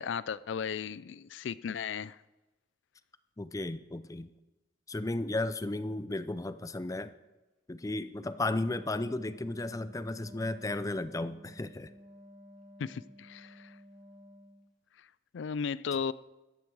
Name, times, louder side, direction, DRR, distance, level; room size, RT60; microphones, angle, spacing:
voice 1, 0.0-2.2 12.8-13.8 15.0-15.1 15.3-16.1, left 6 dB, 80° left, 19 dB, 0.4 m, -35 dB
voice 2, 3.4-4.3 4.9-7.1 7.7-11.9, left 2 dB, 20° left, 14 dB, 0.4 m, -34 dB
Wind instrument woodwind instrument, 8.2-14.7, equal, ahead, 2.8 m, -53 dB
14.5 x 13.0 x 4.7 m, 1.1 s
head